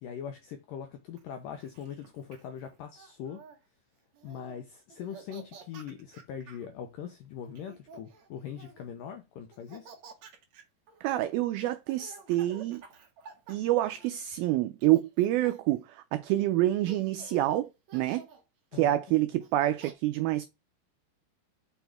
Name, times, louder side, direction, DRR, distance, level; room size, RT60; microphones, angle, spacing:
voice 1, 0.0-3.4 4.2-9.9 18.7-19.0, left 8 dB, 85° left, 1.9 m, -41 dB
Laughter, 1.2-3.6 4.1-4.6 4.9-6.7 7.4-8.9 9.5-14.4 14.8-15.8 16.4-16.5 16.8-17.5 17.9-18.4 19.4-19.9, right 4 dB, 55° right, 2.4 m, -51 dB
voice 2, 11.0-12.8 13.5-18.3 18.7-20.5, right 15 dB, 90° right, 2.1 m, -27 dB
6.2 x 6.2 x 3.4 m
omnidirectional pair, 4.9 m